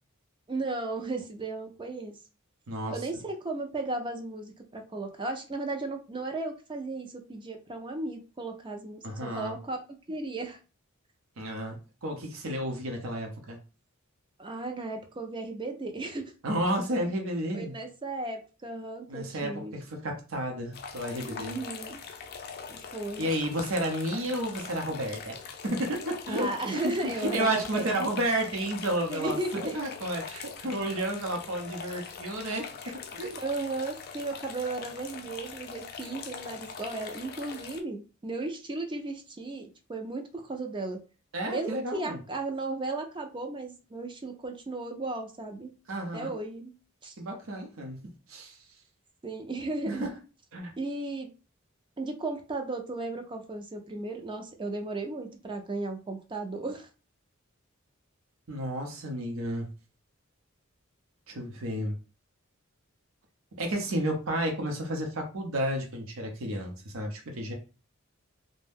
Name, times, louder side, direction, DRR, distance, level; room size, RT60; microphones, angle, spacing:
voice 1, 0.5-2.1 2.9-9.8 10.1-10.6 14.4-16.3 17.5-19.7 21.4-22.0 22.7-23.3 26.3-27.9 29.1-29.7 32.8-32.9 33.4-41.0 41.5-45.7 46.1-46.7 47.0-47.1 49.2-50.1 50.8-51.3 52.0-56.9, right 2 dB, 25° right, 4 dB, 0.4 m, -35 dB
voice 2, 9.0-9.5 11.4-13.6 16.4-17.7 19.1-21.6 23.2-25.4 25.6-29.4 29.7-32.6 33.1-33.4 41.3-42.2 45.9-46.4 47.2-48.0 48.3-48.6 49.9-50.1 50.5-50.7 58.5-59.7 61.3-62.0 63.6-67.5, right 1 dB, 75° right, 2 dB, 0.7 m, -31 dB
sound 1, 20.7-37.8, left 6 dB, 50° left, 0.4 m, -42 dB
2.6 x 2.1 x 3.4 m, 0.33 s
head